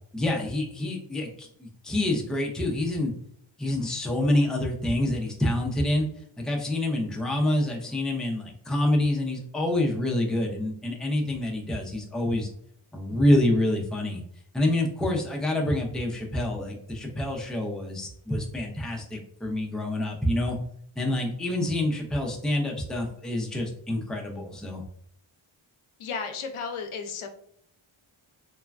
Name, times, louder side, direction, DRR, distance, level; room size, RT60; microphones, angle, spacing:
voice 1, 0.1-3.1 3.6-6.1 6.4-12.5 12.9-14.2 14.5-20.6 21.0-24.8, left 1 dB, ahead, 0 dB, 0.5 m, -27 dB
voice 2, 26.0-27.3, left 5 dB, 85° left, 5 dB, 0.6 m, -33 dB
3.1 x 2.2 x 2.3 m, 0.67 s
wide cardioid pair, 90°, 49 cm